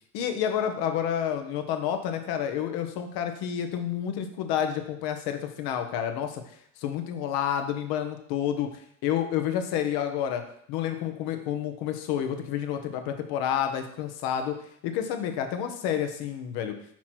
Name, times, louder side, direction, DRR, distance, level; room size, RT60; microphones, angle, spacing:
voice 1, 0.1-6.4 6.8-8.7 9.0-14.6 14.8-16.8, left 9 dB, 60° left, 6 dB, 1.1 m, -29 dB
5.9 x 4.3 x 4.5 m, 0.66 s
hypercardioid pair, 90°, 41 cm